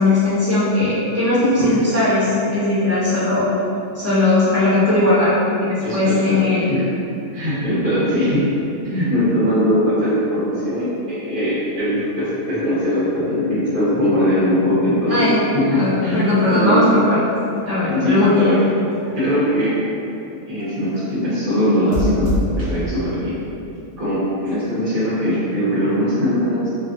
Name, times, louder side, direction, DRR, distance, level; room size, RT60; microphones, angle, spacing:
voice 1, 0.0-3.4 3.9-5.3 5.6-6.8 15.1-15.5 15.7-17.2 17.7-18.3, left 2 dB, 20° right, -13 dB, 0.5 m, -18 dB
voice 2, 5.8-6.4 6.7-6.8 7.3-8.5 8.8-16.9 17.9-18.6 19.1-19.7 20.3-23.3 24.0-26.7, equal, 40° right, -12 dB, 1.2 m, -20 dB
sound 1, 17.2-20.1 20.6-21.2 21.9-22.9, left 1 dB, 75° right, 1.0 m, -28 dB
3.0 x 2.4 x 2.5 m, 2.8 s
omnidirectional pair, 1.5 m